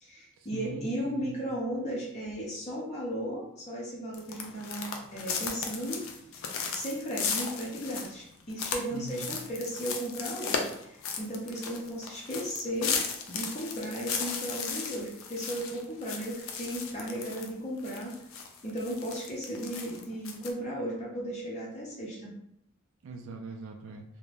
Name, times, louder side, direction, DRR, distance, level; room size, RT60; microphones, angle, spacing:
voice 1, 0.0-6.0 6.3-13.0 13.3-18.1 18.6-22.3, equal, 35° left, -5 dB, 0.6 m, -35 dB
voice 2, 0.5-1.4 8.9-9.4 23.0-24.0, right 3 dB, 75° right, 4 dB, 0.3 m, -41 dB
sound 1, 4.1-17.5 17.8-20.5, left 5 dB, 80° left, 0.4 m, -36 dB
2.5 x 2.1 x 3.2 m, 0.74 s
head